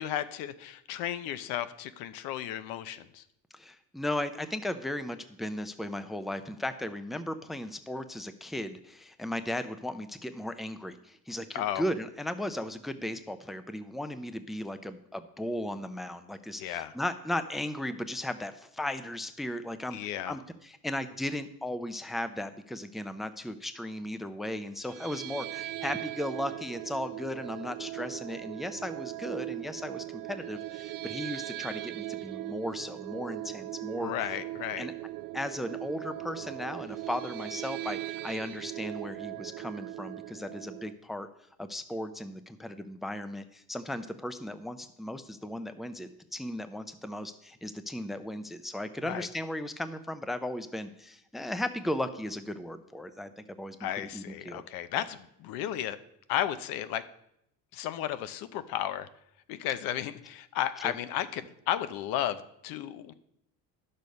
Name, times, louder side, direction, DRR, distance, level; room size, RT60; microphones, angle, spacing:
voice 1, 0.0-3.2 11.5-11.8 16.6-16.9 19.9-20.4 33.9-34.9 49.0-49.3 53.8-56.0 56.3-57.0 57.7-59.1 59.5-63.1, left 11 dB, 85° left, 13 dB, 0.8 m, -34 dB
voice 2, 3.5-34.1 34.8-34.9 35.3-41.3 41.6-54.6 60.8-60.9, left 1 dB, ahead, 11 dB, 0.5 m, -36 dB
sound 1, 24.8-40.9, right 16 dB, 60° right, 0.6 m, -39 dB
11.0 x 6.6 x 5.2 m, 0.77 s
cardioid pair, 130°, 35 cm